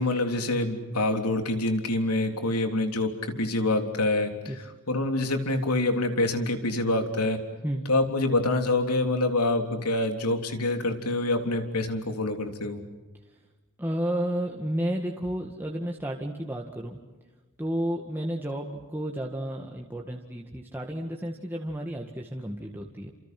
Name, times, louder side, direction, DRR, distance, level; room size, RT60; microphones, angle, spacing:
voice 1, 0.0-3.1 3.4-4.5 4.9-7.4 7.9-12.8, left 2 dB, 90° left, 5 dB, 3.6 m, -26 dB
voice 2, 13.8-17.0 17.6-23.1, right 1 dB, 10° right, 0 dB, 1.9 m, -32 dB
29.5 x 27.5 x 6.1 m, 1.2 s
head